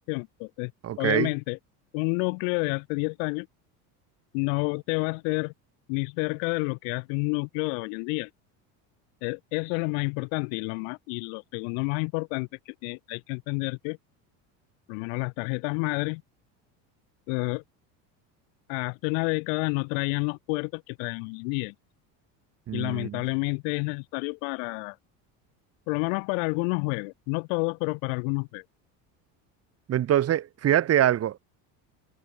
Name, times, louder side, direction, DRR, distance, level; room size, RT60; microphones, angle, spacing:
voice 1, 0.0-0.7 1.0-1.6 1.9-3.5 4.3-5.5 5.9-8.3 9.2-14.0 14.9-16.2 17.3-17.6 18.7-21.7 22.7-25.0 25.9-28.6, left 40 dB or more, 80° left, 1.0 m, -29 dB
voice 2, 0.8-1.3 22.7-23.2 29.9-31.4, right 11 dB, 40° right, 1.3 m, -24 dB
supercardioid pair, 115°, 39 cm